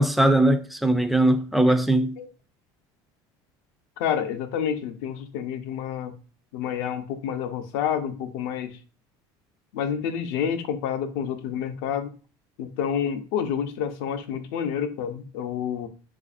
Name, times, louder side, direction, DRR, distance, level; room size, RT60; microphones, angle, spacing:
voice 1, 0.0-2.2, right 1 dB, ahead, 0.3 m, -20 dB
voice 2, 4.0-6.1 6.5-8.8 9.7-12.1 12.6-15.9, left 8 dB, 75° left, 0.6 m, -29 dB
4.9 x 2.5 x 2.4 m
supercardioid pair, 130°, 11 cm